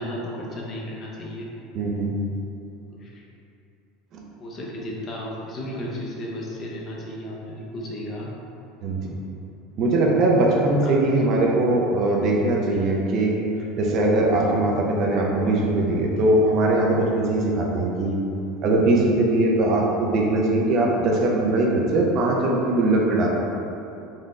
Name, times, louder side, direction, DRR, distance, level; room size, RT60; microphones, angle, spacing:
voice 1, 0.0-1.5 2.9-3.2 4.4-8.3 10.8-11.3, left 1 dB, 30° left, -3 dB, 0.6 m, -34 dB
voice 2, 1.7-2.1 4.1-4.2 8.8-9.0 9.8-13.4 13.8-18.2 18.6-23.3, right 2 dB, 40° right, -1 dB, 0.4 m, -21 dB
3.8 x 2.1 x 3.6 m, 2.8 s
supercardioid pair, 150°, 0 cm